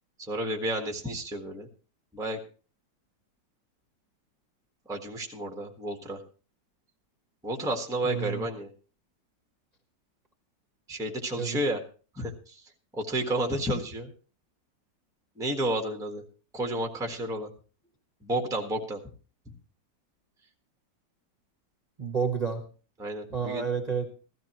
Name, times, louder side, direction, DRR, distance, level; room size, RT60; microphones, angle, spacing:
voice 1, 0.2-1.7 2.1-2.4 4.9-6.2 7.4-8.7 10.9-11.8 12.1-14.1 15.4-16.2 16.5-17.5 18.2-19.0 23.0-23.6, right 1 dB, ahead, 2 dB, 1.3 m, -31 dB
voice 2, 8.0-8.5 11.4-11.6 22.0-22.6 23.3-24.0, right 6 dB, 25° right, 3 dB, 1.3 m, -30 dB
15.5 x 13.5 x 3.0 m, 0.36 s
omnidirectional pair, 1.9 m